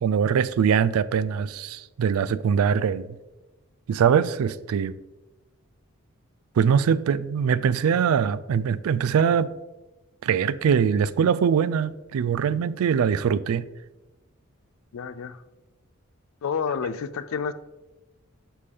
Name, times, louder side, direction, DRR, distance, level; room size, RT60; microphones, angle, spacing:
voice 1, 0.0-3.2 3.9-4.9 6.6-9.5 10.2-13.7, right 7 dB, 80° right, 0.3 m, -22 dB
voice 2, 14.9-15.4 16.4-17.5, left 6 dB, 70° left, 0.4 m, -29 dB
11.0 x 3.7 x 3.4 m
head